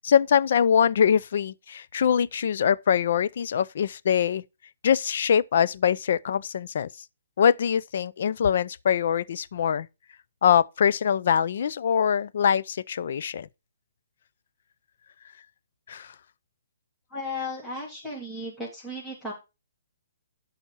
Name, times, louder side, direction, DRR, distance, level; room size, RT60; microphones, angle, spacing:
voice 1, 0.0-4.4 4.8-6.9 7.4-9.9 10.4-13.5 15.9-16.1, left 8 dB, 55° left, 0.6 m, -23 dB
voice 2, 17.1-19.3, left 2 dB, 5° left, 3.0 m, -35 dB
12.0 x 4.3 x 5.5 m
hypercardioid pair, 165°, 0 cm